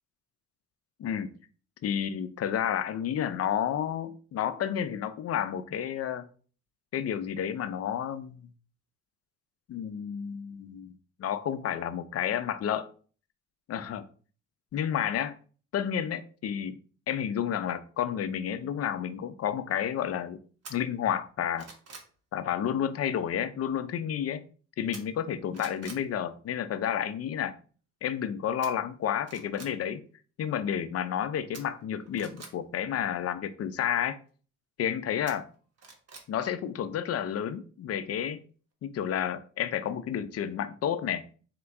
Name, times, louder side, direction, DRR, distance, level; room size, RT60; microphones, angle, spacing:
voice 1, 1.0-1.3 1.8-6.2 6.9-8.5 9.7-10.9 11.2-12.9 13.7-14.0 14.7-15.3 15.7-16.8 17.1-20.4 20.7-21.7 22.3-24.4 24.8-27.6 28.0-30.0 30.4-34.2 34.8-35.5 36.3-38.4 38.8-41.2, left 9 dB, 55° left, 0.5 m, -31 dB
sound 1, 20.6-20.8 21.3-22.1 24.9-25.3 25.5-26.0 28.6-28.7 29.2-29.7 31.5-32.5 35.3-36.3 36.6-36.7, right 4 dB, 55° right, 1.2 m, -46 dB
4.4 x 2.9 x 3.4 m
cardioid pair, 90°, 30 cm